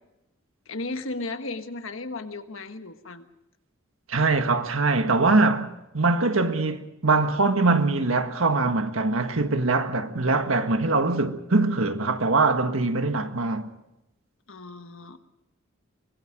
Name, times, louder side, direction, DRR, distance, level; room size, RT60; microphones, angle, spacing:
voice 1, 0.7-3.2 14.5-15.2, left 2 dB, 75° left, 1.5 m, -35 dB
voice 2, 4.1-13.7, right 3 dB, 85° right, 1.6 m, -23 dB
24.0 x 20.5 x 5.2 m
head